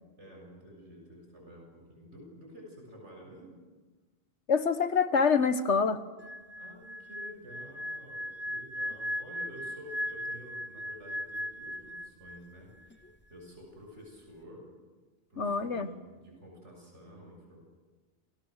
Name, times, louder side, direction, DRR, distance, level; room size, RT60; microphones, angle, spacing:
voice 1, 0.2-3.6 6.6-14.7 15.3-17.6, equal, 85° right, 0 dB, 7.6 m, -50 dB
voice 2, 4.5-6.0 15.4-15.9, left 5 dB, 80° left, 11 dB, 1.6 m, -26 dB
sound 1, 6.2-12.6 12.8-13.1, left 1 dB, 10° left, 0.6 m, -38 dB
29.0 x 28.5 x 6.5 m, 1.3 s
omnidirectional pair, 1.2 m